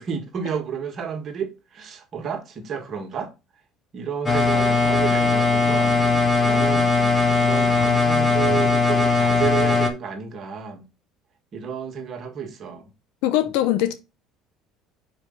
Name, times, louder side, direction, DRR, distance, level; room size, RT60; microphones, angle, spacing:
voice 1, 0.0-3.3 3.9-6.9 7.4-10.9 11.5-12.9 13.4-13.5, right 7 dB, 45° right, 1.5 m, -31 dB
sound 1, 4.3-9.9, left 3 dB, 25° left, 1.4 m, -19 dB
voice 2, 13.2-13.9, left 13 dB, 80° left, 0.9 m, -21 dB
5.3 x 4.8 x 5.5 m
supercardioid pair, 100°, 0 cm